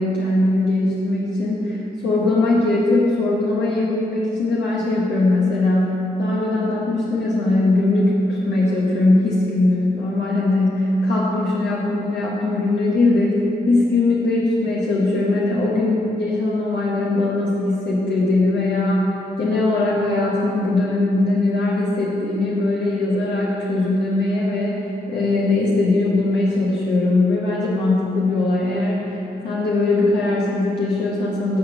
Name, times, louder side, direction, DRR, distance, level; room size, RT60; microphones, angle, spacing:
voice 1, 0.0-29.2 29.4-31.6, left 2 dB, 90° left, -5 dB, 1.1 m, -20 dB
9.2 x 4.2 x 6.8 m, 2.9 s
cardioid pair, 70°, 17 cm